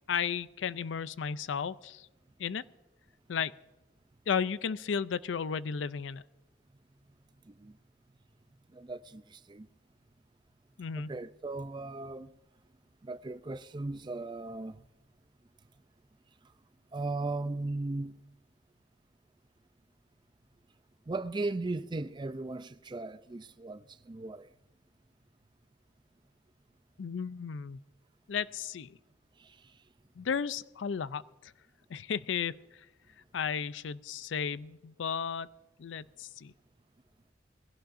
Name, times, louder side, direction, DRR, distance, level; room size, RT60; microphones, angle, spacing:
voice 1, 0.1-2.1 2.4-2.6 3.3-3.5 4.3-6.2 10.8-11.1 27.0-27.8 28.3-29.0 30.2-31.5 31.9-32.6 33.3-35.5 35.8-36.5, left 7 dB, 75° left, 0.4 m, -34 dB
voice 2, 8.7-9.7 11.0-12.3 13.0-14.8 16.9-18.2 21.1-24.5 29.4-29.6, right 2 dB, 25° right, 0.4 m, -37 dB
20.5 x 16.5 x 2.6 m
head